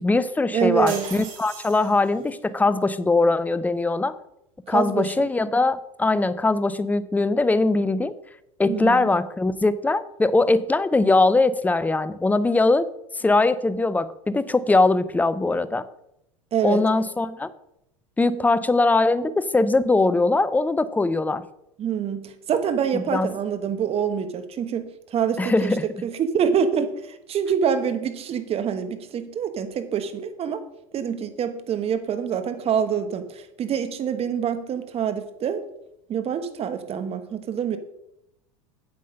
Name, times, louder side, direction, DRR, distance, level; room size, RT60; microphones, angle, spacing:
voice 1, 0.0-4.1 4.7-8.1 8.6-12.9 13.2-15.9 16.6-17.5 18.2-21.4 22.9-23.3 25.4-25.8, left 3 dB, 10° left, 16 dB, 0.6 m, -21 dB
voice 2, 0.5-1.0 4.7-5.3 8.7-9.1 16.5-16.8 21.8-25.7 26.0-26.9 27.3-30.6 30.9-35.6 36.1-37.8, right 7 dB, 35° right, 10 dB, 1.3 m, -26 dB
sound 1, 0.9-2.3, right 6 dB, 70° right, 2.8 m, -38 dB
8.4 x 8.0 x 5.2 m, 0.81 s
hypercardioid pair, 95°, 17 cm